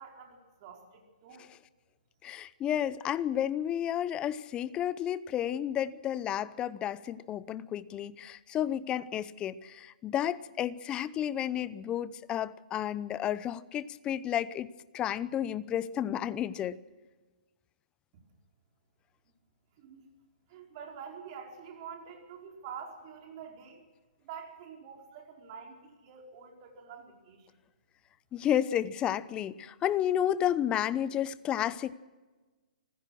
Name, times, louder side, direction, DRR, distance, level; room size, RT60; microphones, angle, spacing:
voice 1, 0.0-1.5 19.8-20.0 20.5-23.8 24.2-27.5, right 7 dB, 40° right, 2 dB, 4.8 m, -47 dB
voice 2, 2.2-14.7 14.9-16.8 28.3-31.9, left 10 dB, 20° left, 18 dB, 0.7 m, -31 dB
25.5 x 16.0 x 6.3 m, 1.3 s
hypercardioid pair, 140°, 5 cm